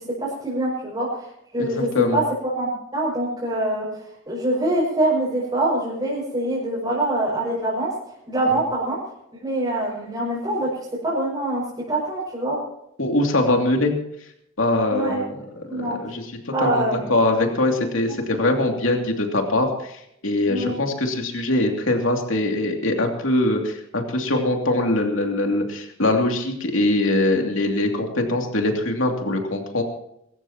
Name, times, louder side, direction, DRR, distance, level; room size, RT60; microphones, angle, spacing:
voice 1, 0.2-7.9 8.3-9.0 9.4-10.7 11.0-12.6 14.9-15.2 15.7-16.0 16.5-17.0 20.5-20.8, right 1 dB, 20° right, -8 dB, 6.2 m, -24 dB
voice 2, 1.7-2.2 8.5-8.6 13.0-13.9 14.6-16.3 16.6-29.8, left 2 dB, 70° left, 2 dB, 2.7 m, -22 dB
24.0 x 14.0 x 3.0 m, 0.77 s
head